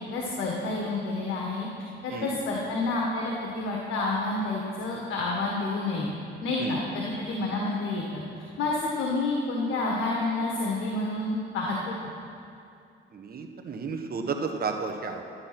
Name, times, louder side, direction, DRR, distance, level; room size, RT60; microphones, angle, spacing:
voice 1, 0.1-1.7 2.0-6.1 6.4-8.2 8.6-11.9, left 2 dB, 85° left, -2 dB, 1.6 m, -29 dB
voice 2, 13.1-15.3, right 4 dB, 50° right, 4 dB, 1.3 m, -32 dB
12.5 x 9.7 x 6.0 m, 2.5 s
cardioid pair, 90°, 20 cm